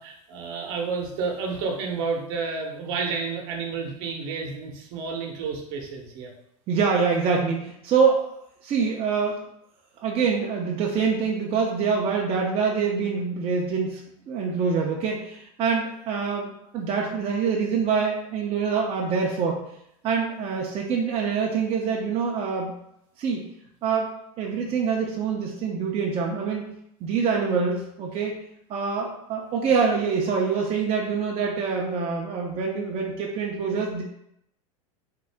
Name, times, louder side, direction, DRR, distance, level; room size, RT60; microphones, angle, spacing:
voice 1, 0.0-6.3, right 4 dB, 60° right, 1 dB, 0.8 m, -30 dB
voice 2, 6.7-8.3 8.6-9.4 10.0-19.6 20.0-22.7 23.2-23.5 23.8-26.6 27.0-28.4 28.7-34.0, right 5 dB, 30° right, -1 dB, 0.5 m, -25 dB
3.6 x 2.0 x 3.4 m, 0.77 s
supercardioid pair, 115°, 19 cm